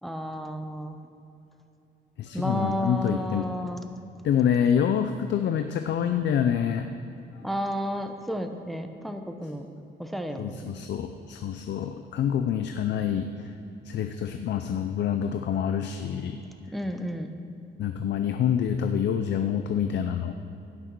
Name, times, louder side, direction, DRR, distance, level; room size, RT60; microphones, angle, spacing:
voice 1, 0.0-1.0 2.3-3.8 7.4-9.7 10.0-10.8 16.7-17.3, equal, ahead, 6 dB, 0.8 m, -32 dB
voice 2, 2.2-3.5 4.2-6.9 7.3-7.4 10.4-13.5 13.8-16.4 17.8-20.3, left 8 dB, 65° left, 7 dB, 0.5 m, -27 dB
17.0 x 6.2 x 4.6 m, 2.9 s
cardioid pair, 90°, 20 cm